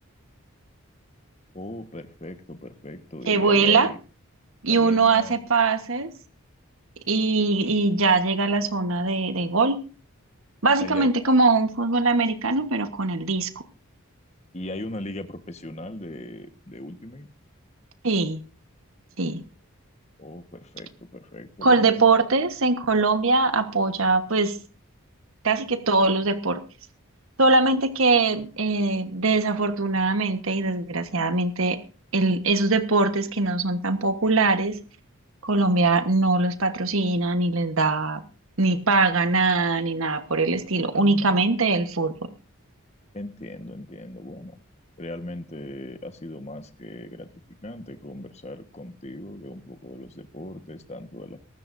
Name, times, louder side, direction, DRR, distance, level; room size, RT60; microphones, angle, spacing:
voice 1, 1.5-4.0 4.7-5.4 10.8-11.1 14.5-17.3 20.2-22.0 43.1-44.6 45.0-51.4, left 1 dB, 30° left, 1.3 m, -38 dB
voice 2, 3.3-3.9 4.6-6.1 7.1-9.8 10.6-13.5 18.0-18.4 19.2-19.4 21.6-24.6 25.4-26.6 27.4-31.8 32.1-34.8 35.4-38.2 38.6-42.3, right 3 dB, 70° right, 1.3 m, -22 dB
23.0 x 12.5 x 2.7 m
head